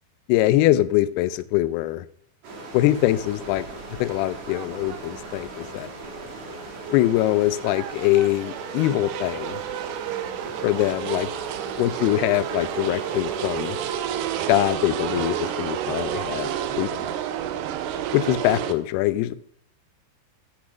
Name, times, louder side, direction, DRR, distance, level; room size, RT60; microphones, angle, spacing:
voice 1, 0.3-2.1 2.7-3.7 4.0-5.9 6.9-9.6 10.6-11.3 11.8-13.8 14.5-17.1 18.1-19.3, left 15 dB, 85° left, 14 dB, 2.3 m, -23 dB
sound 1, 2.4-14.0, right 2 dB, 50° right, 2.5 m, -39 dB
sound 2, 2.7-18.7, right 10 dB, 85° right, 2.6 m, -31 dB
10.0 x 6.2 x 5.1 m, 0.65 s
omnidirectional pair, 4.9 m